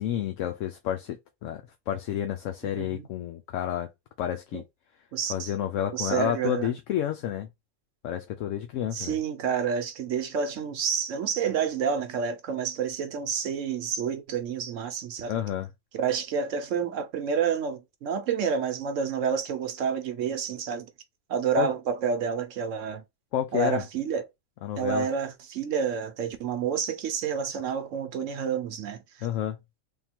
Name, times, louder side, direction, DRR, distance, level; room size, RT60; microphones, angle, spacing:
voice 1, 0.0-3.9 4.2-4.6 5.3-7.5 8.0-9.2 15.3-15.7 21.6-21.7 23.3-23.8 24.6-25.1 29.2-29.6, left 10 dB, 75° left, 0.9 m, -30 dB
voice 2, 2.6-3.1 4.5-4.6 5.1-5.5 5.9-6.7 8.9-15.3 15.9-20.9 21.3-23.0 23.5-24.3 24.7-29.3, right 7 dB, 75° right, 1.0 m, -29 dB
3.6 x 2.3 x 4.3 m
omnidirectional pair, 1.4 m